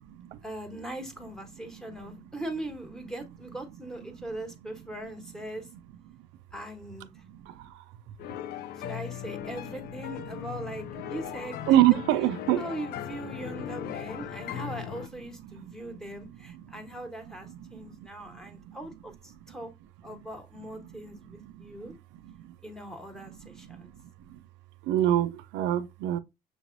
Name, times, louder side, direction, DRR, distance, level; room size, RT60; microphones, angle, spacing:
voice 1, 0.4-5.7 6.5-7.2 8.8-11.6 12.6-19.7 20.0-21.9 22.6-23.9, right 1 dB, 5° left, 1.2 m, -40 dB
sound 1, 8.2-15.1, left 11 dB, 55° left, 0.4 m, -38 dB
voice 2, 11.7-12.6 24.9-26.2, right 13 dB, 75° right, 0.5 m, -23 dB
6.6 x 3.1 x 2.6 m
cardioid pair, 110°, 19 cm